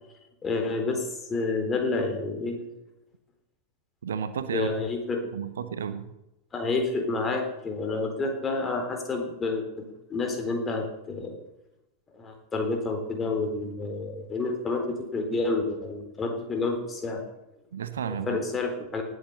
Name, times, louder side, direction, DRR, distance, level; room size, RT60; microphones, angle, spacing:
voice 1, 0.4-2.6 4.5-5.2 6.5-11.4 12.1-17.2 18.1-19.0, left 3 dB, 20° left, 4 dB, 3.6 m, -29 dB
voice 2, 4.0-4.7 5.3-6.1 17.7-18.4, right 7 dB, 65° right, 11 dB, 1.2 m, -32 dB
19.0 x 7.9 x 6.6 m, 0.91 s
figure-of-eight pair, 90°, 0 cm